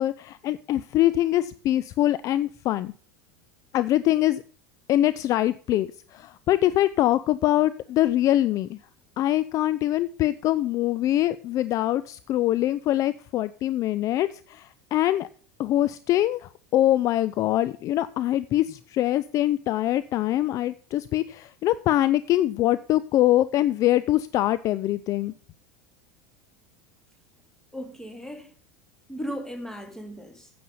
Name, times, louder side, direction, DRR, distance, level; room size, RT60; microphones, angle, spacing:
voice 1, 0.0-2.9 3.7-4.4 4.9-8.8 9.2-15.3 15.6-25.3, left 14 dB, 40° left, 0.4 m, -23 dB
voice 2, 27.7-28.5 29.1-30.5, equal, 5° left, 2.6 m, -36 dB
9.2 x 7.7 x 5.5 m
figure-of-eight pair, 80°, 9 cm